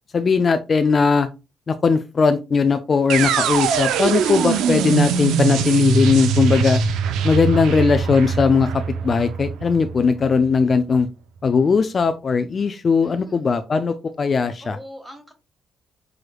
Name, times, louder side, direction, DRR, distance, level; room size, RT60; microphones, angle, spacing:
voice 1, 0.1-1.3 1.7-6.8 7.2-8.7 9.0-11.1 11.4-14.8, left 5 dB, 40° left, 9 dB, 0.4 m, -19 dB
sound 1, 3.1-11.0, right 6 dB, 85° right, 0.6 m, -22 dB
voice 2, 3.5-3.9 7.7-7.9 13.0-13.5 14.6-15.3, equal, 10° right, 4 dB, 1.6 m, -42 dB
6.2 x 3.2 x 2.3 m, 0.27 s
cardioid pair, 90°, 0 cm